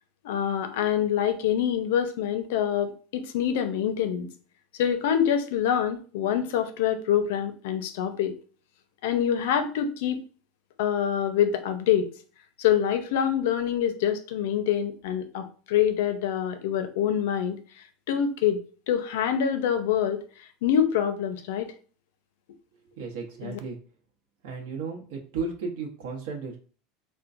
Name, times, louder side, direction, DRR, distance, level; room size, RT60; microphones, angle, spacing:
voice 1, 0.2-4.3 4.8-8.3 9.0-10.2 10.8-12.1 12.6-17.6 18.1-20.2 20.6-21.7 23.4-23.6, left 9 dB, 75° left, 8 dB, 0.5 m, -25 dB
voice 2, 23.0-23.8 24.4-26.6, right 4 dB, 75° right, -1 dB, 0.8 m, -34 dB
4.3 x 2.1 x 2.5 m, 0.40 s
supercardioid pair, 175°, 0 cm